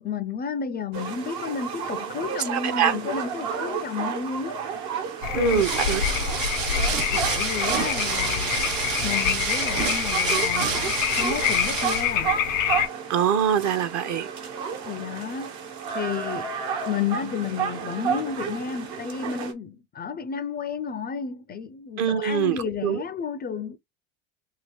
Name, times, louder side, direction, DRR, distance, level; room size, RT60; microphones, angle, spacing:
voice 1, 0.0-4.9 5.3-5.6 7.1-8.7 9.0-12.4 14.8-15.6 15.9-16.5 16.9-23.8, left 6 dB, 25° left, 0.4 m, -32 dB
sound 1, 0.9-19.5, right 7 dB, 70° right, 1.3 m, -32 dB
voice 2, 2.3-3.0 5.3-6.0 13.1-14.3 22.0-23.0, right 8 dB, 50° right, 0.8 m, -24 dB
sound 2, 5.2-12.9, left 9 dB, 85° left, 0.8 m, -26 dB
sound 3, 5.5-12.2, right 6 dB, 85° right, 1.0 m, -29 dB
2.8 x 2.8 x 3.1 m
hypercardioid pair, 80°, 38 cm